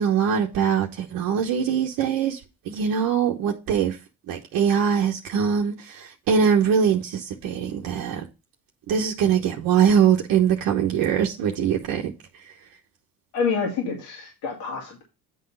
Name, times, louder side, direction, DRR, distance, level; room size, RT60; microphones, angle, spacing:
voice 1, 0.0-4.0 4.3-8.3 8.9-12.1, right 7 dB, 75° right, 1.1 m, -22 dB
voice 2, 13.3-15.0, left 5 dB, 85° left, 2.4 m, -27 dB
9.1 x 3.9 x 5.3 m
supercardioid pair, 75°, 35 cm